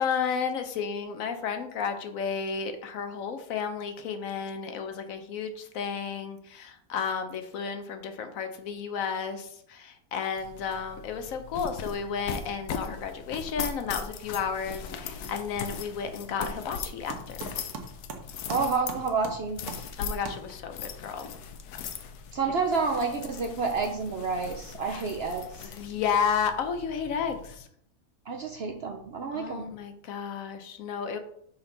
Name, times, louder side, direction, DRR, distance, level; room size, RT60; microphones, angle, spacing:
voice 1, 0.0-17.1 20.0-21.3 24.9-25.0 25.6-27.7 29.3-31.2, left 6 dB, 70° left, 7 dB, 1.0 m, -32 dB
sound 1, 10.4-27.5, left 6 dB, 90° left, 1.2 m, -40 dB
sound 2, 15.2-20.9, right 4 dB, 80° right, 1.4 m, -43 dB
voice 2, 18.5-19.6 22.3-25.7 28.3-29.6, right 4 dB, 60° right, 4 dB, 0.7 m, -29 dB
6.0 x 4.3 x 3.8 m, 0.67 s
omnidirectional pair, 1.6 m